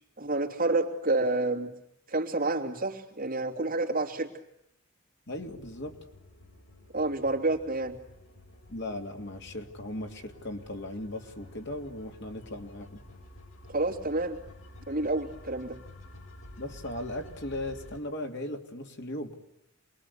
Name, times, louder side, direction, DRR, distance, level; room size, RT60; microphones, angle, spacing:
voice 1, 0.2-1.7 2.1-4.3 6.9-8.0 13.7-14.4 14.9-15.8, right 2 dB, 45° right, 1 dB, 3.2 m, -29 dB
sound 1, 5.3-18.0, left 1 dB, 85° left, 4.8 m, -51 dB
voice 2, 5.3-6.0 8.7-13.0 16.6-19.3, left 1 dB, 60° left, 3 dB, 3.1 m, -37 dB
28.5 x 22.0 x 8.5 m, 0.79 s
head